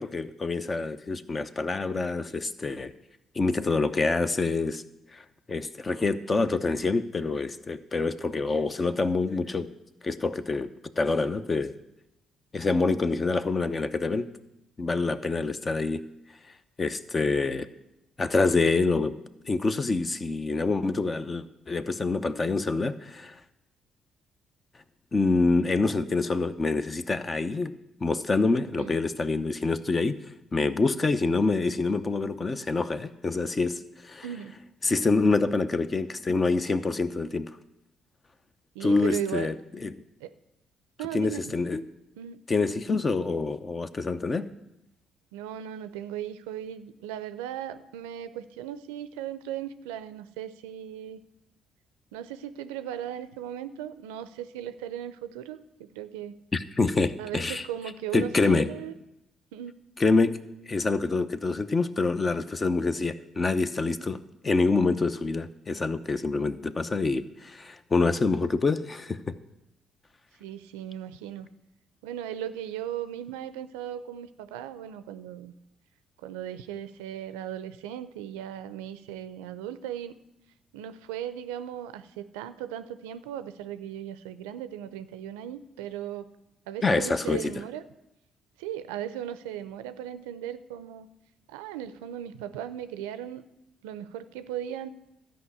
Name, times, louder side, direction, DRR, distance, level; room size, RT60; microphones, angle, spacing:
voice 1, 0.0-2.9 3.3-4.8 5.1-9.7 10.0-11.7 12.5-14.3 14.8-16.0 16.8-17.7 18.2-19.2 19.4-23.4 25.1-27.7 28.0-30.2 30.5-34.2 34.8-37.5 38.8-39.5 39.8-39.9 41.1-41.8 42.5-44.5 56.5-57.7 58.1-58.7 60.0-60.4 60.7-69.3 86.8-87.5, left 3 dB, 35° left, 12 dB, 0.8 m, -26 dB
voice 2, 34.2-34.6 38.7-39.5 40.2-40.3 41.0-41.6 42.2-42.4 45.3-51.2 52.1-56.4 57.2-59.0 59.5-59.8 70.4-71.5 72.0-75.5 76.2-80.1 80.7-86.3 86.7-87.8 88.6-91.1 91.5-93.4 93.8-94.9, right 10 dB, 85° right, 13 dB, 0.5 m, -37 dB
13.0 x 5.2 x 8.3 m, 0.91 s
hypercardioid pair, 50°, 0 cm